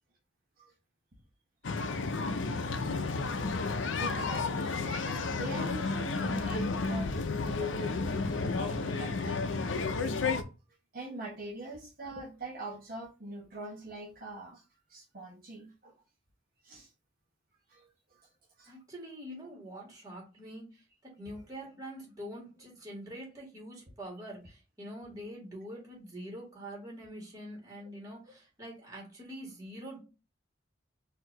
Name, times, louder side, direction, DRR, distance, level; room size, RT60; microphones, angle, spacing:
sound 1, 1.6-10.4, left 4 dB, 75° left, 0.5 m, -32 dB
voice 1, 3.6-4.8 5.3-9.8 10.9-14.6 14.9-15.9 16.6-16.9 17.7-17.9 18.2-18.3 18.6-18.7 27.8-27.9, right 2 dB, 50° right, -4 dB, 1.1 m, -44 dB
voice 2, 18.7-20.7 21.0-30.0, equal, 20° right, -3 dB, 2.2 m, -45 dB
4.6 x 2.8 x 3.9 m, 0.30 s
head